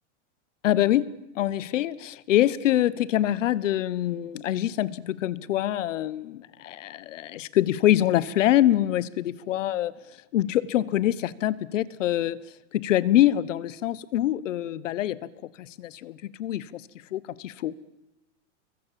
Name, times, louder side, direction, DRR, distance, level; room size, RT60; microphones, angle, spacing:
voice 1, 0.6-9.9 10.3-12.4 12.7-15.3 15.8-16.8 17.1-17.7, left 13 dB, 80° left, 19 dB, 1.3 m, -25 dB
27.0 x 23.0 x 7.6 m, 0.95 s
supercardioid pair, 175°, 37 cm